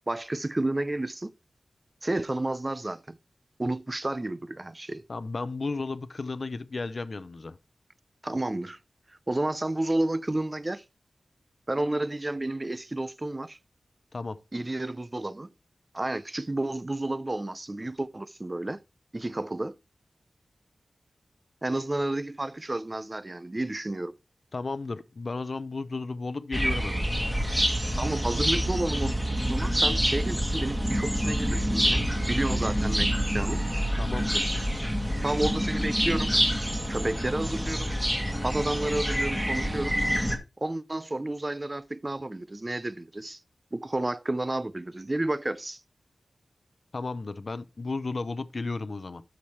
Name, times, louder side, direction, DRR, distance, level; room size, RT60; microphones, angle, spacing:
voice 1, 0.1-1.3 2.0-3.2 3.6-5.0 8.2-8.8 9.3-10.8 11.7-13.6 14.5-15.5 15.9-18.8 19.1-19.8 21.6-24.2 27.9-29.1 29.5-33.6 35.2-36.3 36.9-37.9 38.4-40.0 40.6-43.4 43.7-45.8, right 2 dB, 25° right, 0.5 m, -31 dB
voice 2, 5.1-7.6 14.1-14.4 24.5-27.1 34.0-34.6 46.9-49.2, left 3 dB, 50° left, 0.6 m, -34 dB
sound 1, 26.5-40.4, equal, 5° right, 1.7 m, -27 dB
12.5 x 5.0 x 3.1 m
wide cardioid pair, 80°, 0 cm